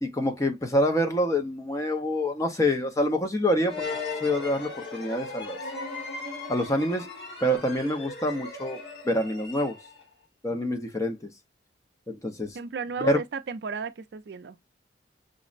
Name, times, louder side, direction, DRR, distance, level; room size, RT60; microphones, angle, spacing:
voice 1, 0.0-3.8 4.2-5.6 6.5-7.1 7.4-8.8 9.1-9.8 10.4-11.3 12.1-12.6 13.0-13.2, equal, 15° left, 0.5 m, -26 dB
sound 1, 3.6-10.1, left 3 dB, 60° left, 1.4 m, -37 dB
voice 2, 12.5-14.6, right 5 dB, 60° right, 0.4 m, -33 dB
5.1 x 2.0 x 2.4 m
head